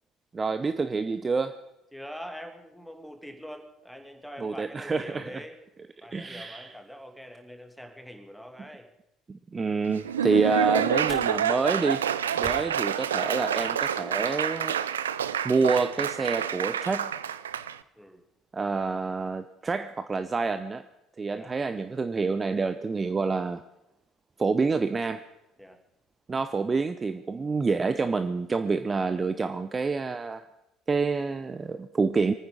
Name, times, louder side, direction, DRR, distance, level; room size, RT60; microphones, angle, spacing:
voice 1, 0.3-1.6 4.4-5.4 6.1-6.8 9.3-12.1 12.4-14.8 15.4-17.1 18.5-20.9 21.2-23.6 24.4-25.2 26.3-30.5 30.9-32.3, right 4 dB, 25° right, 12 dB, 0.7 m, -27 dB
voice 2, 1.9-5.6 6.0-8.9 18.0-18.2 21.3-21.5 25.6-25.8, equal, ahead, 5 dB, 2.5 m, -44 dB
Laughter / Applause, 9.9-17.8, right 9 dB, 80° right, 0.4 m, -28 dB
sound 1, 10.0-13.9, left 3 dB, 40° left, 2.6 m, -49 dB
24.5 x 9.7 x 5.1 m, 0.90 s
figure-of-eight pair, 55°, 0 cm